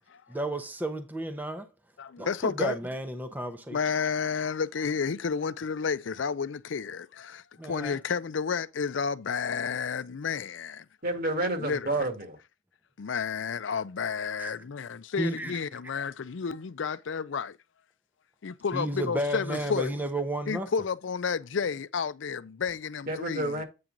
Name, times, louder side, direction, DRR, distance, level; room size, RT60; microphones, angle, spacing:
voice 1, 0.3-1.7 2.2-3.8 7.6-8.0 14.4-14.5 15.2-15.6 18.7-20.7, right 1 dB, 10° right, 0.7 m, -32 dB
voice 2, 2.0-2.8 3.7-10.9 11.6-11.9 13.0-17.6 18.4-19.9 20.5-23.6, left 6 dB, 75° left, 0.5 m, -31 dB
voice 3, 11.0-12.4 23.1-23.6, right 2 dB, 50° right, 1.8 m, -29 dB
8.5 x 4.5 x 3.8 m
head